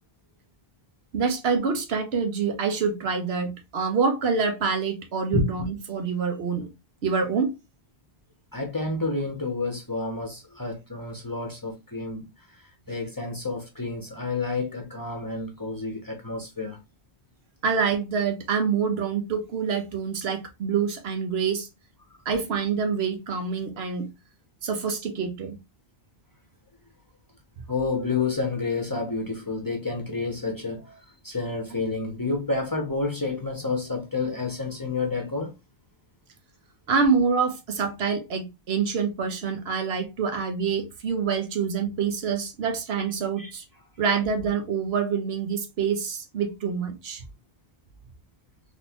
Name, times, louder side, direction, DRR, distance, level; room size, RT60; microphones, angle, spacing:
voice 1, 1.1-6.7 7.0-7.5 17.6-21.7 22.3-24.1 24.6-25.6 36.9-43.6 44.0-47.3, right 5 dB, 80° right, 1.0 m, -26 dB
voice 2, 8.5-12.3 12.9-16.8 27.7-31.0 31.2-35.5 43.4-43.5, left 3 dB, 25° left, 0.6 m, -29 dB
3.7 x 2.5 x 2.8 m
omnidirectional pair, 1.1 m